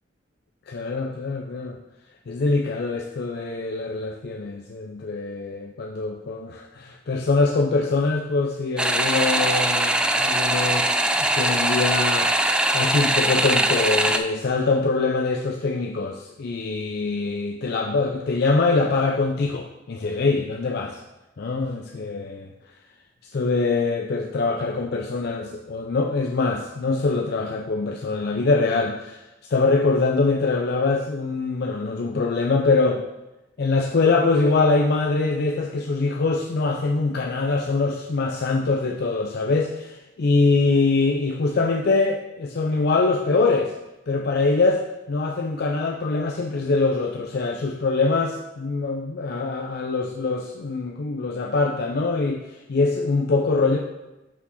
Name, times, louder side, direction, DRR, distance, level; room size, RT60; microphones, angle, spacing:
voice 1, 0.7-1.8 2.3-10.9 11.2-12.3 12.7-21.0 21.4-22.5 23.3-33.0 33.6-43.7 44.1-44.8 45.1-53.8, left 3 dB, 55° left, 1 dB, 0.5 m, -23 dB
sound 1, 8.8-14.2, right 1 dB, 5° right, 0.3 m, -21 dB
5.9 x 4.8 x 4.1 m, 1.0 s
head